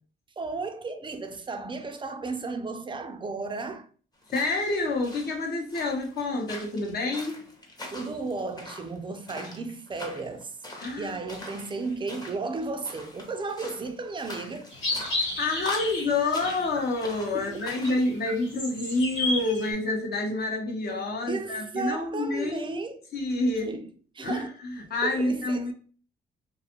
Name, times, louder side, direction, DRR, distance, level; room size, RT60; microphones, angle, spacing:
voice 1, 0.4-3.9 7.9-10.6 11.0-14.7 17.3-17.7 21.3-23.1 23.6-24.5 25.0-25.7, right 3 dB, 25° right, 0.4 m, -34 dB
sound 1, 4.2-18.1, left 1 dB, 20° left, 0.8 m, -43 dB
voice 2, 4.3-7.4 10.8-11.1 15.4-22.7 23.1-23.7 24.2-25.7, left 2 dB, 50° left, 0.8 m, -28 dB
sound 2, 14.7-17.2 17.4-19.7, left 2 dB, 80° left, 1.2 m, -32 dB
2.5 x 2.3 x 2.8 m
cardioid pair, 90°, 20 cm